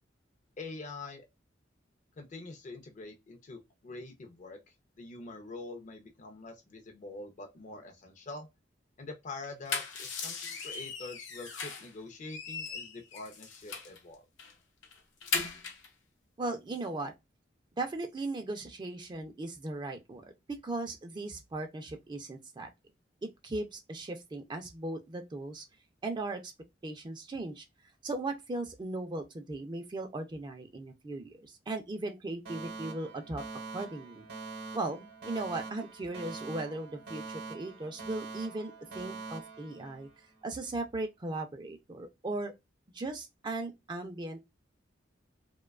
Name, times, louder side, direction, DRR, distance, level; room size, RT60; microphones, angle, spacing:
voice 1, 0.6-1.3 2.2-4.6 5.0-8.5 9.0-14.2, left 3 dB, 45° left, 0.5 m, -45 dB
sound 1, 9.4-11.9 12.3-14.0 14.4-14.5 14.8-15.9, left 5 dB, 85° left, 0.8 m, -38 dB
voice 2, 16.4-17.1 17.8-20.3 20.6-22.7 23.2-25.6 26.0-26.5 26.8-27.6 28.0-33.4 33.7-34.3 34.7-40.1 40.4-42.5 42.9-44.4, right 2 dB, 25° right, 0.4 m, -37 dB
Alarm, 32.5-40.5, right 3 dB, 55° right, 0.7 m, -44 dB
2.6 x 2.2 x 2.2 m
head